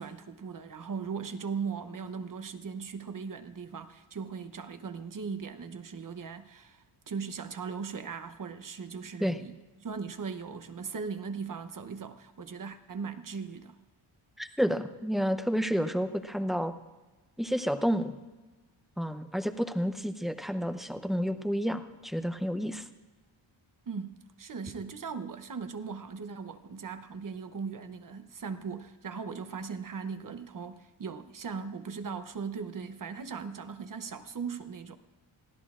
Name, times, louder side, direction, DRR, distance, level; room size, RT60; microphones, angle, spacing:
voice 1, 0.0-9.5 9.8-13.8 23.9-35.0, right 5 dB, 40° right, 9 dB, 0.8 m, -39 dB
voice 2, 14.4-16.7 17.4-18.2 19.0-22.8, equal, ahead, 8 dB, 0.6 m, -30 dB
25.0 x 16.5 x 2.4 m, 1.2 s
wide cardioid pair, 160°, 50 cm